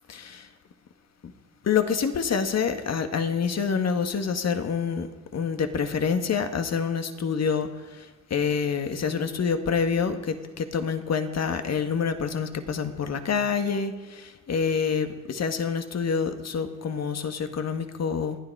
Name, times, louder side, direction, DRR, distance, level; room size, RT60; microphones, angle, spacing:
voice 1, 0.1-0.5 1.6-5.1 5.3-8.1 8.3-18.4, left 6 dB, 45° left, 8 dB, 1.8 m, -27 dB
29.0 x 10.0 x 4.8 m, 1.3 s
supercardioid pair, 75°, 36 cm